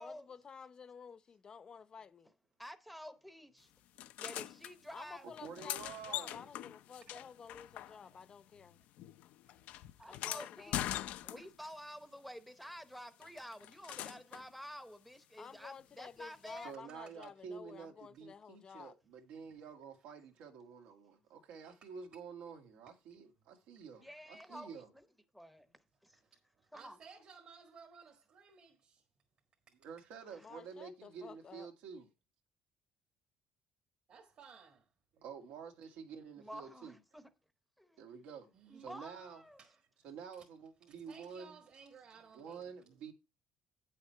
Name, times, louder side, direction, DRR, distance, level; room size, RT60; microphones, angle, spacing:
voice 1, 0.0-2.3 4.9-8.8 10.1-11.1 15.4-18.9 24.5-24.7 30.4-31.7, left 6 dB, 30° left, 0.7 m, -52 dB
voice 2, 2.6-3.7 4.2-5.3 10.0-11.0 11.2-16.7 24.0-25.0 25.3-25.7 26.0-26.2 26.7-27.0 30.3-30.5 36.4-37.2 37.8-38.1 38.7-39.6, equal, ahead, 0.8 m, -50 dB
sound 1, 4.0-4.7 5.3-8.3 8.6-11.7 13.2-14.5 16.5-16.6, left 13 dB, 70° left, 0.5 m, -43 dB
voice 3, 5.2-6.5 16.6-24.9 29.8-32.1 35.2-37.0 38.0-38.5 38.8-39.4 40.0-41.6 42.3-43.1, right 6 dB, 85° right, 2.0 m, -49 dB
voice 4, 7.7-8.2 9.4-10.2 11.4-11.5 17.1-17.2 21.6-22.2 23.7-23.8 25.6-25.8 26.1-29.0 29.7-29.8 34.1-34.9 38.5-38.9 39.6-40.1 40.4-40.5 40.9-42.8, right 6 dB, 45° right, 1.5 m, -59 dB
9.2 x 6.6 x 4.4 m
cardioid pair, 135°, 3 cm